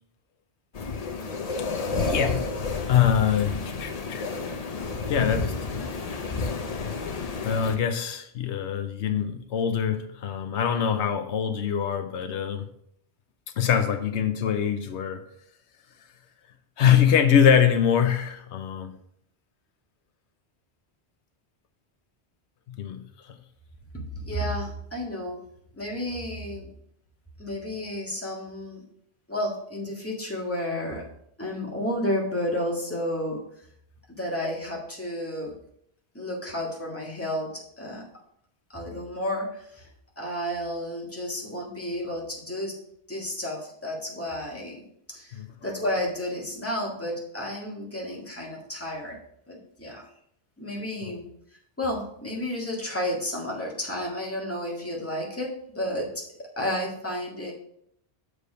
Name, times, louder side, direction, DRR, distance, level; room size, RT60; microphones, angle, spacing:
sound 1, 0.7-7.8, left 4 dB, 40° left, 0.7 m, -30 dB
voice 1, 2.1-2.5 2.9-4.3 5.1-5.9 7.4-12.7 13.6-15.2 16.8-18.9 22.7-23.0 45.3-45.5 51.0-51.2, left 8 dB, 85° left, 1.0 m, -24 dB
voice 2, 24.2-25.4 25.8-26.7 27.4-28.8 29.3-31.1 31.4-33.4 34.1-35.5 36.1-38.0 38.7-39.9 40.2-42.8 43.1-44.8 45.1-49.2 49.5-50.1 50.6-51.2 51.8-57.5, left 1 dB, 10° left, 1.7 m, -31 dB
6.8 x 5.0 x 5.0 m
omnidirectional pair, 1.1 m